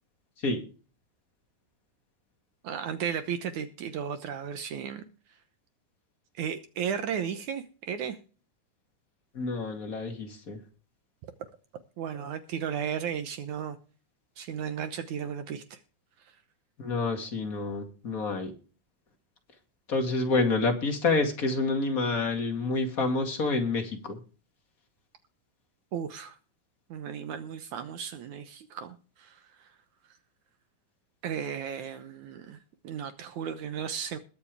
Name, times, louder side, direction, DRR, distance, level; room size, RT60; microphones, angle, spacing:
voice 1, 2.6-5.0 6.3-8.2 12.0-13.8 14.4-15.8 16.2-16.3 25.9-26.4 26.9-29.7 31.2-32.6 32.8-34.2, right 8 dB, 65° right, 2.0 m, -35 dB
voice 2, 9.3-10.6 16.8-18.5 19.9-24.2, left 3 dB, 30° left, 2.1 m, -28 dB
21.5 x 7.2 x 3.4 m
omnidirectional pair, 4.3 m